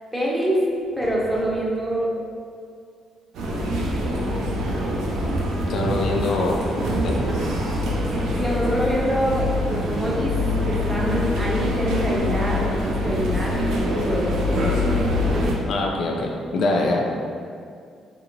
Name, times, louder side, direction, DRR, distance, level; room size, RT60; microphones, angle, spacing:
voice 1, 0.1-0.6 1.0-2.1 8.4-10.3 10.6-14.9, right 1 dB, 5° right, -5 dB, 0.6 m, -25 dB
sound 1, 0.7-2.0 6.5-10.0 14.6-15.8, equal, 45° right, 0.7 m, -37 dB
sound 2, 3.3-15.5, left 1 dB, 80° right, 0.4 m, -24 dB
voice 2, 5.7-6.6 7.0-7.2 15.7-17.0, left 2 dB, 70° left, 0 dB, 0.3 m, -23 dB
2.6 x 2.6 x 2.9 m, 2.2 s
cardioid pair, 90°, 0 cm